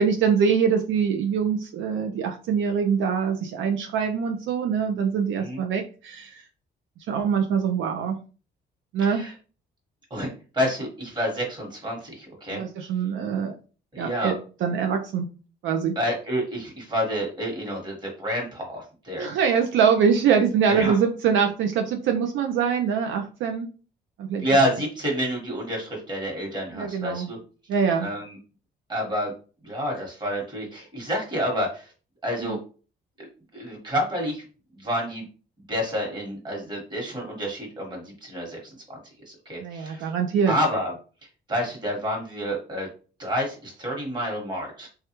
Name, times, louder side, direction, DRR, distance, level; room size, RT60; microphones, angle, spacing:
voice 1, 0.0-6.4 7.1-8.2 8.9-9.3 12.5-13.5 14.0-15.3 15.6-15.9 19.1-23.7 24.2-24.5 26.7-27.3 27.7-28.1 32.4-32.6 39.6-40.6, right 6 dB, 80° right, 4 dB, 0.5 m, -24 dB
voice 2, 9.0-9.3 10.1-10.3 10.5-12.6 13.9-14.3 15.9-19.3 20.6-21.0 24.4-27.4 28.0-28.4 28.9-29.3 29.6-31.9 32.2-32.6 33.2-33.3 33.5-34.4 34.7-35.2 35.7-39.0 39.3-40.1 40.5-40.9 41.5-42.9 43.2-44.9, equal, 20° right, -2 dB, 1.3 m, -28 dB
3.3 x 2.3 x 2.9 m, 0.36 s
cardioid pair, 90°, 20 cm